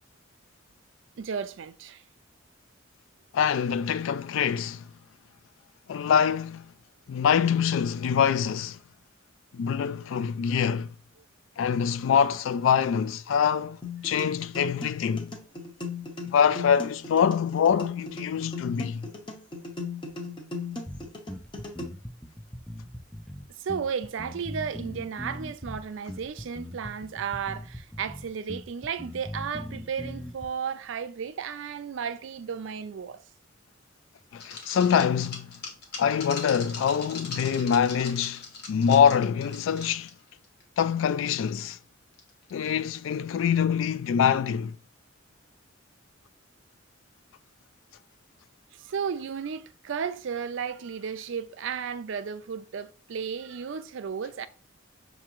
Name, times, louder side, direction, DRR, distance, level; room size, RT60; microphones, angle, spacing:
voice 1, 1.2-2.0 23.6-33.2 48.8-54.5, right 6 dB, 70° right, 0.4 m, -34 dB
voice 2, 3.3-4.9 5.9-6.7 7.1-8.8 9.5-10.9 11.6-13.8 14.0-15.3 16.3-19.1 34.3-35.5 36.0-40.1 40.8-41.8 42.5-44.8, left 7 dB, 75° left, 0.3 m, -24 dB
sound 1, 13.8-21.8, left 4 dB, 25° left, 0.7 m, -37 dB
sound 2, 20.9-30.5, left 1 dB, ahead, 0.3 m, -40 dB
sound 3, 34.4-40.2 40.4-40.6 41.0-41.1 42.2-42.5, left 4 dB, 50° left, 1.0 m, -40 dB
5.8 x 2.6 x 2.9 m
head